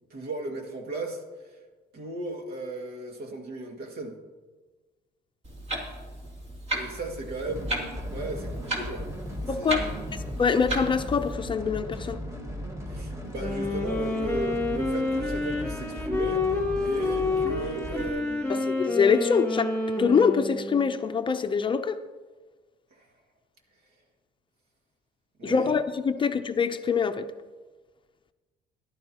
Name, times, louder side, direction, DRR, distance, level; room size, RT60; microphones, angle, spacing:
voice 1, 0.1-1.6 1.9-4.1 6.7-7.7 8.1-9.0 9.6-10.1 12.9-18.7 25.4-25.7 26.2-26.3, right 2 dB, 65° right, 2.0 m, -36 dB
Clock, 5.4-11.3, right 1 dB, 40° right, 2.8 m, -35 dB
sound 1, 7.5-18.1, equal, 15° right, 1.5 m, -37 dB
voice 2, 9.5-9.9 10.4-12.2 18.5-19.7 20.0-22.0 25.4-27.3, left 6 dB, 30° left, 0.6 m, -24 dB
Wind instrument woodwind instrument, 13.3-21.0, left 3 dB, 5° left, 2.7 m, -29 dB
14.5 x 11.5 x 2.9 m
cardioid pair, 110°, 17 cm